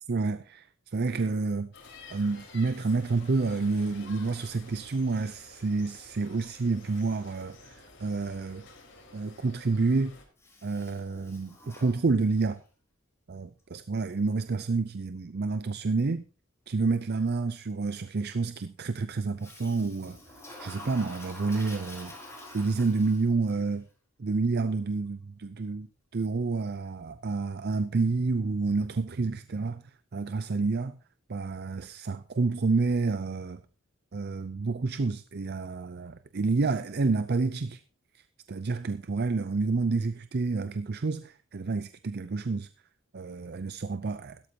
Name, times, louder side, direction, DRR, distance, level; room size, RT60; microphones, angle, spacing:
voice 1, 0.1-1.7 2.1-8.7 9.1-10.2 10.6-12.6 13.3-16.2 16.7-20.2 20.6-22.1 22.5-23.9 24.2-25.9 26.1-29.8 30.1-31.0 31.3-33.6 34.1-37.8 38.5-42.7 43.1-44.4, right 3 dB, 50° right, 0.5 m, -29 dB
sound 1, 1.7-10.2, left 3 dB, 60° left, 4.2 m, -51 dB
Toilet flush, 10.4-12.6 19.4-23.5, left 1 dB, 15° left, 4.3 m, -47 dB
16.0 x 13.0 x 2.9 m
head